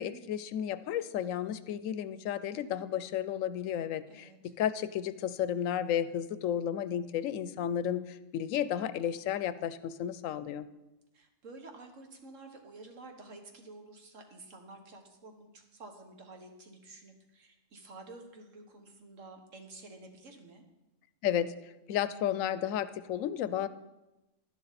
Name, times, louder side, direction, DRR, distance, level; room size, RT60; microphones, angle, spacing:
voice 1, 0.0-10.7 21.2-21.5 21.9-23.7, left 10 dB, 90° left, 14 dB, 1.0 m, -33 dB
voice 2, 4.1-4.5 11.1-20.7, right 2 dB, 75° right, 4 dB, 1.8 m, -51 dB
11.5 x 10.5 x 4.1 m, 0.99 s
omnidirectional pair, 1.3 m